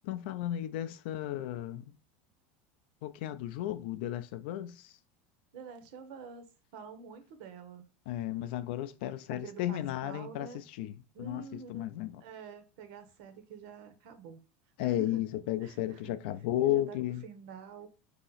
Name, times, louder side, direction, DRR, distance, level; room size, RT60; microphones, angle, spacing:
voice 1, 0.0-1.8 3.0-4.9 8.1-12.2 14.8-17.2, left 13 dB, 60° left, 0.4 m, -34 dB
voice 2, 5.5-7.8 9.3-10.7 11.1-14.4 14.8-15.2 15.6-16.1 16.6-17.0 17.2-17.9, right 5 dB, 55° right, 0.8 m, -47 dB
4.1 x 2.8 x 3.9 m
supercardioid pair, 175°, 6 cm